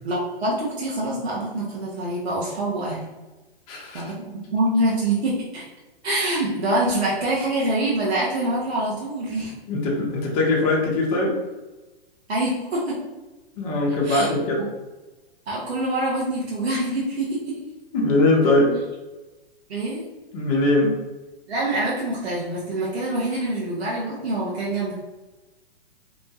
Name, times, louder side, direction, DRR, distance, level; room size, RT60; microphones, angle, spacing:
voice 1, 0.0-3.1 3.9-5.6 6.0-9.5 12.3-13.0 14.0-14.3 14.6-14.7 15.5-17.6 19.7-20.0 21.5-24.9, right 1 dB, 85° right, -6 dB, 0.9 m, -25 dB
voice 2, 3.7-4.1 9.7-11.4 13.6-14.6 17.9-18.8 20.3-21.0, left 2 dB, 40° left, -2 dB, 0.8 m, -21 dB
2.9 x 2.2 x 2.7 m, 1.1 s
hypercardioid pair, 130°, 31 cm